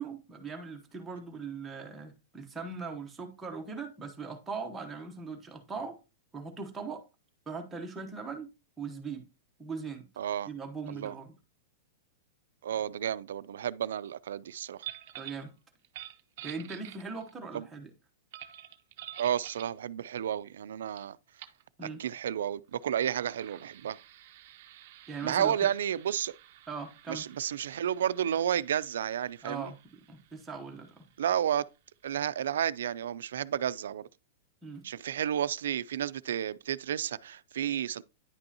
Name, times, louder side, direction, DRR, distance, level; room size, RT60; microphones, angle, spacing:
voice 1, 0.0-6.0 6.3-7.0 7.5-9.2 9.6-10.1 10.5-11.4 15.2-15.5 16.4-17.9 21.8-22.0 25.1-25.6 26.7-27.3 29.4-31.1 34.6-34.8, right 4 dB, 5° right, 0.9 m, -40 dB
voice 2, 10.2-10.5 10.9-11.1 12.6-14.8 17.5-17.7 19.2-21.2 22.0-24.0 25.2-26.3 27.1-29.7 31.2-31.6 32.0-34.1 34.8-38.0, right 9 dB, 90° right, 0.4 m, -31 dB
sound 1, 14.8-15.5 15.8-17.4 18.3-19.8 21.0-21.1 21.4-21.6 22.7-32.0, right 12 dB, 45° right, 0.6 m, -49 dB
9.9 x 5.3 x 2.8 m
supercardioid pair, 175°, 0 cm